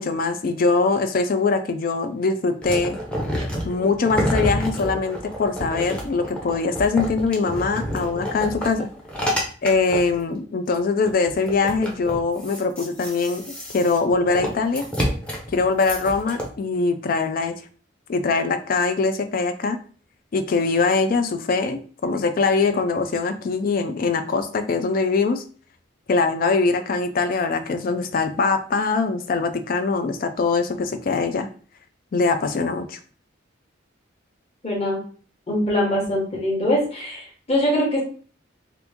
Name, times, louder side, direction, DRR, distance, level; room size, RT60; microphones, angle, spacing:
voice 1, 0.0-3.0 3.6-8.9 9.6-13.4 13.7-14.9 15.5-17.6 18.1-19.8 20.3-25.4 26.1-31.5 32.1-33.0, left 4 dB, 45° left, 9 dB, 0.4 m, -22 dB
sound 1, 2.6-10.2 10.7-10.8 11.0-16.5, equal, 5° left, 0.7 m, -28 dB
voice 2, 34.6-35.0 35.5-38.0, left 1 dB, 30° left, -3 dB, 1.1 m, -22 dB
2.9 x 2.5 x 3.4 m, 0.42 s
head